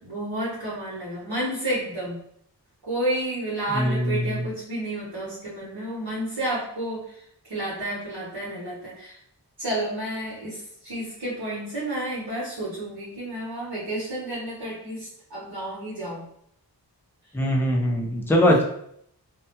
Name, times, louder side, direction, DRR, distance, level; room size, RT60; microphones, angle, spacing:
voice 1, 0.0-2.2 2.8-7.0 7.5-9.2 9.6-16.3, right 1 dB, 70° right, -7 dB, 0.9 m, -31 dB
voice 2, 3.7-4.4 17.3-18.6, equal, 5° left, 0 dB, 0.4 m, -22 dB
2.2 x 2.1 x 2.8 m, 0.68 s
wide cardioid pair, 50°, 43 cm